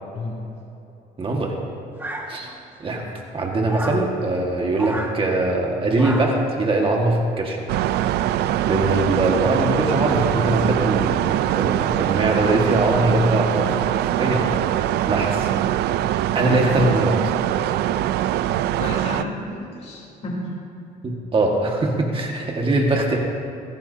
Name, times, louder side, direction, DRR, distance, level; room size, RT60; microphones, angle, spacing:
voice 1, 1.2-1.6 2.3-2.5 2.8-7.6 8.7-14.5 14.8-15.5 16.3-17.2 21.0-23.2, right 2 dB, 30° right, 0 dB, 1.7 m, -22 dB
sound 1, 2.0-2.7 3.7-4.1 4.7-5.2 6.0-6.5, right 1 dB, 10° right, 1.7 m, -31 dB
sound 2, 7.7-19.2, right 12 dB, 80° right, 0.5 m, -22 dB
voice 2, 18.7-20.5 22.8-23.2, left 2 dB, 40° left, -5 dB, 3.5 m, -32 dB
21.5 x 16.5 x 2.8 m, 2.8 s
cardioid pair, 110°, 17 cm